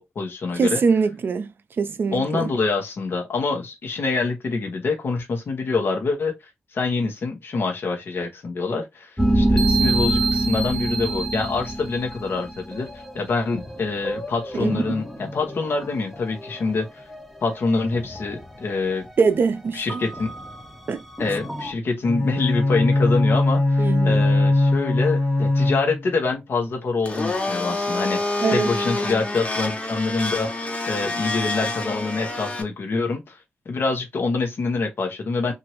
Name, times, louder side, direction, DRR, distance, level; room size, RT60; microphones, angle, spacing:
voice 1, 0.0-0.8 2.1-6.4 6.7-17.0 17.4-19.1 19.7-20.3 21.2-35.5, left 3 dB, 65° left, 0.9 m, -26 dB
voice 2, 0.6-1.5 1.8-2.5 14.6-14.8 19.2-20.0 20.9-21.0 23.8-24.2 28.4-28.7, right 5 dB, 55° right, 0.5 m, -22 dB
sound 1, 9.2-13.2 13.5-16.7 17.1-17.3 17.7-18.7 19.1-19.2 19.9-21.7, right 1 dB, ahead, 0.7 m, -26 dB
Bowed string instrument, 22.0-26.2, left 2 dB, 85° left, 1.3 m, -20 dB
Domestic sounds home sounds, 27.0-32.6, left 2 dB, 30° left, 0.8 m, -27 dB
3.0 x 2.5 x 2.9 m
cardioid pair, 80°, 4 cm